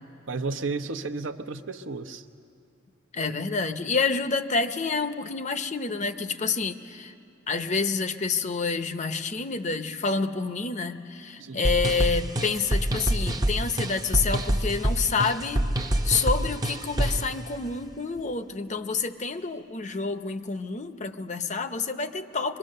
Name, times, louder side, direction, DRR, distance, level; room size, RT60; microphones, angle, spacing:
voice 1, 0.3-2.2 11.4-11.6, right 3 dB, 70° right, 7 dB, 0.8 m, -32 dB
voice 2, 3.1-7.1 7.5-15.7 16.0-22.6, left 4 dB, 35° left, 9 dB, 0.7 m, -28 dB
sound 1, 11.6-17.3, right 1 dB, 20° right, 0.7 m, -26 dB
23.5 x 23.0 x 6.6 m, 2.8 s
head